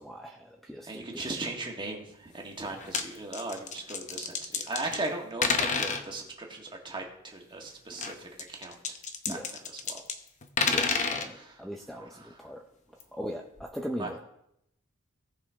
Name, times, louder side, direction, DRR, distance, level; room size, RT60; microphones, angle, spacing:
voice 1, 0.0-1.4 9.3-9.5 10.7-12.6 13.1-14.2, equal, ahead, 2 dB, 0.6 m, -39 dB
voice 2, 0.9-8.8 9.3-9.4 9.9-10.0 11.3-11.5 14.0-14.1, right 2 dB, 20° right, 1 dB, 1.6 m, -37 dB
sound 1, 2.7-3.0 3.3-5.1 5.4-6.0 7.9-10.2 10.4-11.3 13.0-13.1 13.6-13.7, left 5 dB, 35° left, 0.8 m, -30 dB
17.5 x 5.9 x 3.5 m, 0.77 s
head